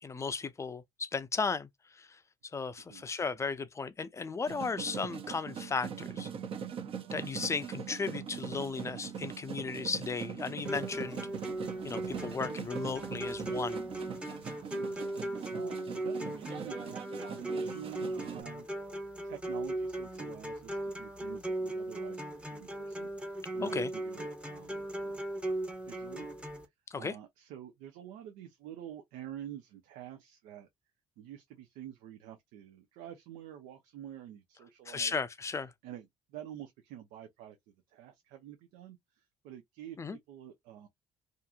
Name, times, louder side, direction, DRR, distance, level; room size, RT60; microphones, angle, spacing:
voice 1, 0.0-6.3 7.1-11.2 11.8-13.8 23.6-23.9 26.9-27.2 34.9-35.7 40.0-40.2, left 4 dB, 20° left, 0.4 m, -35 dB
sound 1, 4.5-18.4, right 7 dB, 45° right, 0.6 m, -41 dB
sound 2, 10.7-26.7, right 1 dB, 10° right, 0.7 m, -38 dB
voice 2, 14.7-15.1 15.5-18.7 19.2-25.2 25.8-26.3 27.0-30.7 31.2-35.1 35.8-40.9, right 11 dB, 80° right, 0.6 m, -48 dB
2.8 x 2.5 x 2.3 m
supercardioid pair, 90°, 13 cm